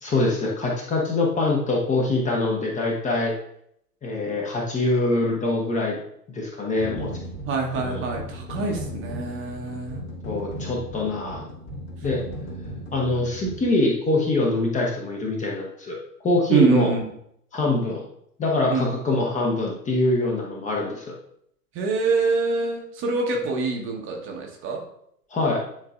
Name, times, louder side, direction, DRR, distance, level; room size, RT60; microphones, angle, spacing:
voice 1, 0.0-3.3 4.0-6.0 6.3-7.1 7.7-8.1 10.3-11.4 12.0-12.2 12.9-16.9 17.5-18.0 18.4-21.1 25.3-25.6, left 2 dB, 15° left, -2 dB, 1.0 m, -24 dB
sound 1, 6.8-13.7, equal, 40° left, 2.3 m, -36 dB
voice 2, 7.5-10.0 16.5-17.0 18.7-18.9 21.7-24.8, right 4 dB, 25° right, 1 dB, 1.1 m, -25 dB
9.9 x 3.9 x 2.4 m, 0.72 s
figure-of-eight pair, 105°, 48 cm